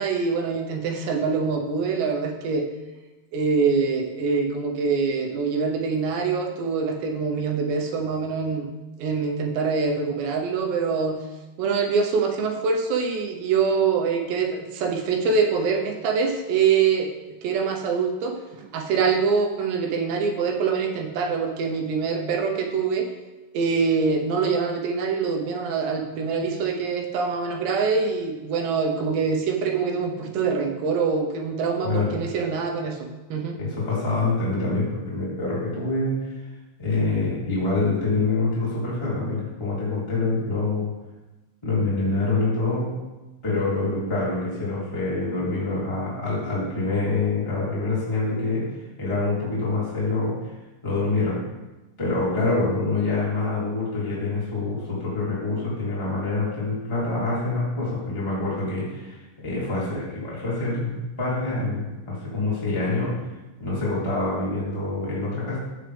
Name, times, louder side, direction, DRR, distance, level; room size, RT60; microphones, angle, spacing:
voice 1, 0.0-2.7 3.3-8.7 9.0-11.2 11.6-17.1 17.4-23.1 23.5-33.6, right 5 dB, 80° right, 2 dB, 3.2 m, -24 dB
voice 2, 31.8-32.2 33.6-36.2 36.8-40.9 41.6-43.0 43.4-48.7 49.0-50.4 50.8-51.4 52.0-63.1 63.6-65.6, left 3 dB, 10° left, -9 dB, 2.5 m, -26 dB
15.5 x 6.6 x 3.5 m, 1.1 s
omnidirectional pair, 5.0 m